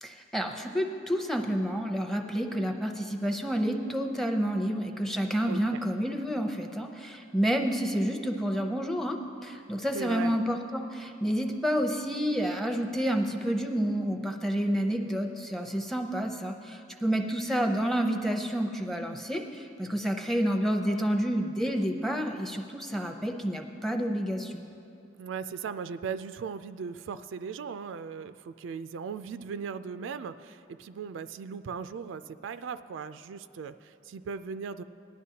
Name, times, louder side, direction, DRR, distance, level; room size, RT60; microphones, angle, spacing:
voice 1, 0.0-24.6, equal, ahead, 3 dB, 0.7 m, -29 dB
voice 2, 5.5-5.8 9.9-10.4 25.2-34.8, right 6 dB, 75° right, 12 dB, 0.3 m, -38 dB
18.5 x 11.0 x 2.8 m, 2.6 s
head